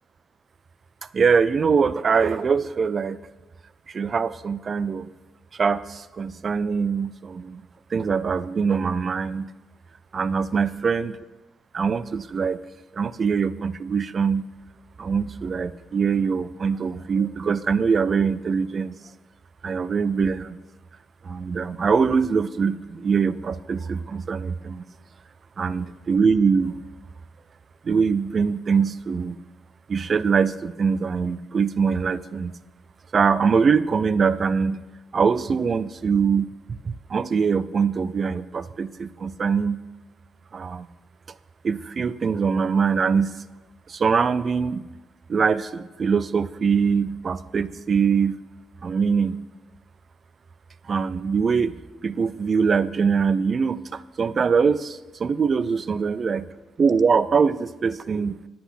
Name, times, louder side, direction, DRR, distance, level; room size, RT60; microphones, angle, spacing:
voice 1, 1.1-3.2 3.9-5.1 5.5-7.6 7.9-9.5 10.1-11.2 11.7-12.6 13.0-14.5 15.0-19.0 19.6-20.6 21.2-24.8 25.6-26.7 27.8-29.4 29.9-32.5 33.1-34.8 35.1-36.5 36.8-39.8 40.5-40.9 41.6-43.4 43.9-44.8 45.3-48.4 48.8-49.4 50.9-51.7 52.0-56.4 56.8-58.4, right 5 dB, 45° right, 15 dB, 0.5 m, -23 dB
10.5 x 8.1 x 5.6 m, 1.2 s
cardioid pair, 90°, 0 cm